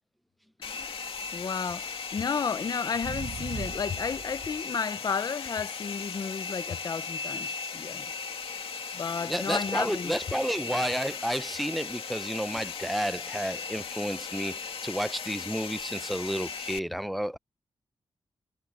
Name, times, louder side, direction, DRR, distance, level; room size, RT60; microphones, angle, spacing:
Domestic sounds home sounds, 0.6-16.8, left 5 dB, 75° left, 2.5 m, -37 dB
voice 1, 0.6-1.0 1.3-8.1 8.9-10.1, left 6 dB, 40° left, 0.7 m, -33 dB
sound 1, 3.0-4.6 5.5-5.6 11.5-11.6, right 5 dB, 45° right, 5.6 m, -40 dB
voice 2, 9.2-17.4, equal, ahead, 0.6 m, -31 dB
wide cardioid pair, 165°, 10 cm